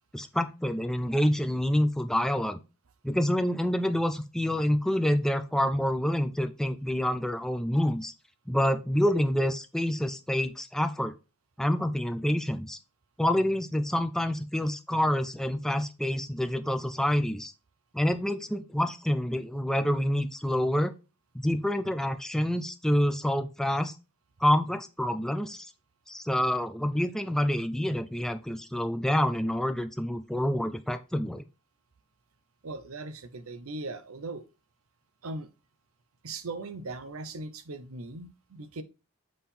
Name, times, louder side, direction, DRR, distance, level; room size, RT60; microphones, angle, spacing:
voice 1, 0.1-2.6 3.0-8.1 8.5-11.1 11.6-12.8 13.2-17.5 17.9-20.9 21.3-23.9 24.4-25.7 26.1-31.4, equal, ahead, 0.4 m, -27 dB
voice 2, 32.6-34.4 35.2-35.5 36.2-38.8, right 3 dB, 75° right, 0.7 m, -39 dB
7.6 x 3.6 x 4.3 m
head